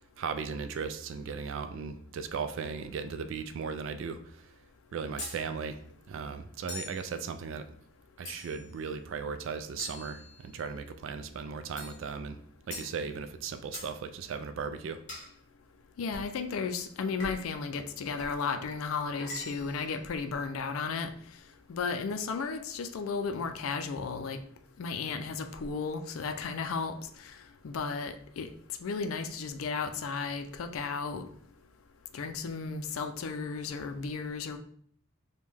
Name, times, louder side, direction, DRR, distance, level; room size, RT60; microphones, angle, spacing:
voice 1, 0.2-4.5 4.9-7.7 8.2-12.4 12.7-15.0, right 5 dB, 65° right, 9 dB, 0.3 m, -37 dB
sound 1, 5.2-5.4 6.7-7.0 8.3-8.7 9.8-10.7 11.8-12.0 12.7-12.9 13.7-13.9 15.1-15.3 16.1-16.3 17.2-17.5 18.2-18.4 19.2-19.8, left 1 dB, 35° left, 1.2 m, -42 dB
voice 2, 16.0-21.1 21.7-24.4 24.8-27.4 27.6-28.5 28.8-31.2 32.1-34.6, left 5 dB, 80° left, 7 dB, 0.4 m, -34 dB
5.2 x 2.2 x 3.2 m, 0.63 s
head